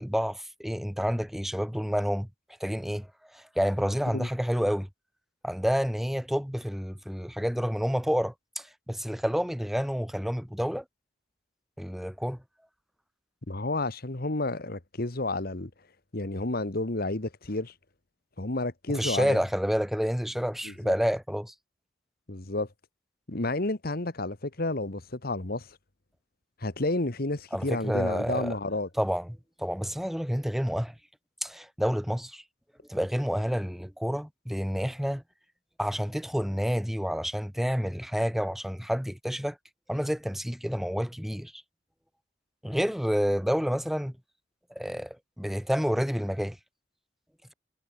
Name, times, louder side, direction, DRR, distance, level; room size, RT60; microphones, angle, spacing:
voice 1, 0.0-2.3 2.6-3.1 3.3-4.9 5.4-10.8 11.8-12.4 18.9-21.5 27.5-28.6 29.0-30.9 31.4-32.4 32.9-35.2 35.8-39.6 39.9-41.6 42.6-44.1 44.8-46.6, equal, ahead, 0.8 m, -29 dB
voice 2, 13.5-15.7 16.1-17.7 18.4-19.4 20.6-20.9 22.3-22.7 23.3-25.8 26.6-28.9, left 2 dB, 55° left, 1.7 m, -31 dB
head